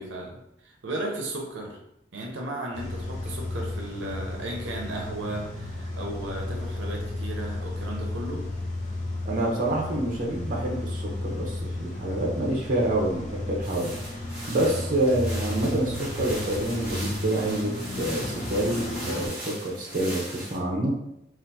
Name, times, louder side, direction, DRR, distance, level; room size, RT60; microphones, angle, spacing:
voice 1, 0.0-1.8 2.1-8.5, right 1 dB, 85° right, 0 dB, 0.6 m, -35 dB
Car / Engine starting / Idling, 2.7-19.3, left 1 dB, 40° left, 0.6 m, -33 dB
voice 2, 9.2-13.9 14.5-20.9, right 1 dB, 45° right, -2 dB, 0.6 m, -27 dB
sound 1, 13.6-20.6, right 1 dB, 10° right, 0.8 m, -39 dB
3.5 x 2.4 x 2.7 m, 0.81 s
head